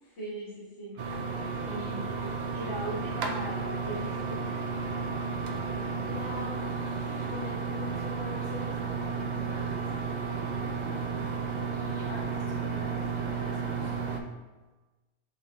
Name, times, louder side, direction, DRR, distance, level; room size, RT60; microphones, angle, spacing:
voice 1, 0.2-1.0 1.3-4.5 10.5-10.9, right 1 dB, 55° left, -8 dB, 1.7 m, -40 dB
sound 1, 1.0-14.2, right 5 dB, 85° right, 0.4 m, -33 dB
voice 2, 6.1-9.8 10.9-11.4 11.7-13.9, left 3 dB, 35° left, -8 dB, 1.3 m, -44 dB
4.0 x 3.5 x 3.7 m, 1.2 s
omnidirectional pair, 1.3 m